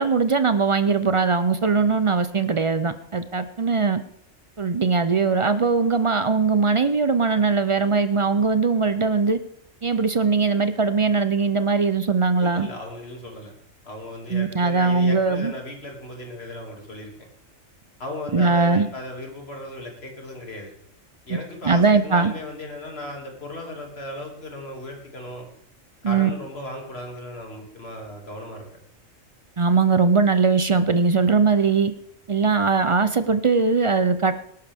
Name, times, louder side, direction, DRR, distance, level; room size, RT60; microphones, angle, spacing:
voice 1, 0.0-4.0 4.6-9.4 9.8-12.7 14.3-15.5 18.3-18.9 21.6-22.3 26.0-26.3 29.6-31.9 32.3-34.3, right 4 dB, 50° right, 11 dB, 0.3 m, -20 dB
voice 2, 12.4-13.5 13.8-17.1 18.0-20.7 21.2-25.5 26.0-28.6, left 1 dB, 50° left, 1 dB, 2.7 m, -36 dB
19.5 x 11.5 x 3.5 m, 0.65 s
omnidirectional pair, 1.4 m